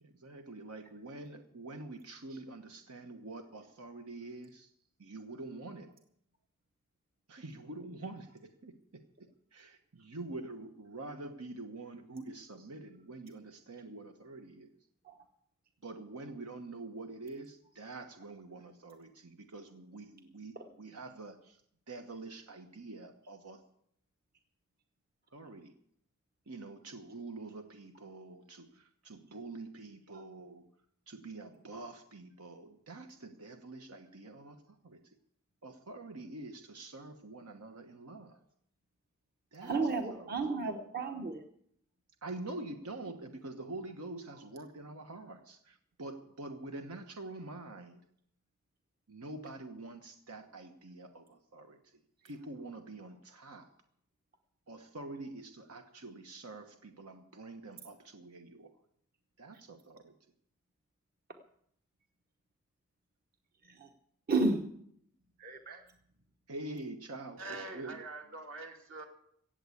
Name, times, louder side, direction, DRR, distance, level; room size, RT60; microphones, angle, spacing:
voice 1, 0.0-4.7 5.0-5.9 7.3-9.0 9.5-14.7 15.8-21.6 21.9-23.6 25.3-25.7 26.5-30.6 31.1-35.0 35.6-38.4 39.5-39.8 40.1-40.4 42.2-48.0 49.1-51.8 52.2-53.7 54.7-58.7 59.4-60.1 66.5-68.0, right 2 dB, 90° right, 6 dB, 1.1 m, -46 dB
voice 2, 39.6-41.4 63.6-63.9 64.3-64.6 65.4-65.9, right 3 dB, 45° right, 5 dB, 1.0 m, -33 dB
voice 3, 67.4-69.0, right 3 dB, 65° right, 2 dB, 2.6 m, -44 dB
17.0 x 7.6 x 8.3 m, 0.70 s
head